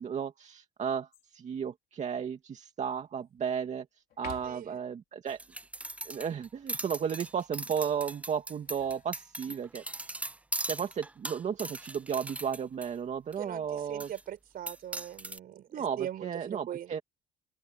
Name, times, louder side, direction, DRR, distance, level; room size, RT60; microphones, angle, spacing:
voice 1, 0.0-3.9 4.2-5.4 6.0-9.8 10.7-14.1 15.7-17.0, right 7 dB, 45° right, 2.2 m, -34 dB
sound 1, 1.1-1.6 2.1-2.2 2.8-3.6 4.1-4.9 8.4-9.7 11.1-11.6, left 11 dB, 65° left, 4.6 m, -52 dB
voice 2, 4.4-4.8 13.4-17.0, right 11 dB, 60° right, 5.2 m, -41 dB
sound 2, 5.3-12.9 13.3-13.4 14.0-14.2 14.7-15.4, right 2 dB, 10° right, 0.5 m, -39 dB
open air
cardioid pair, 110°, 17 cm